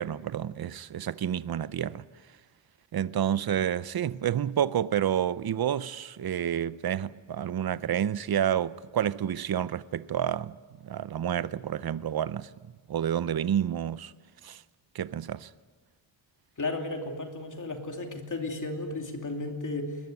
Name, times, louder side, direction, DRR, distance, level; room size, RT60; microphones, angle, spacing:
voice 1, 0.0-2.0 2.9-10.6 10.8-12.5 12.9-14.1 14.4-14.6 14.9-15.5, right 9 dB, 50° right, 0.6 m, -29 dB
voice 2, 16.6-20.0, left 2 dB, 40° left, 2.8 m, -34 dB
21.5 x 20.5 x 9.3 m
wide cardioid pair, 165°, 48 cm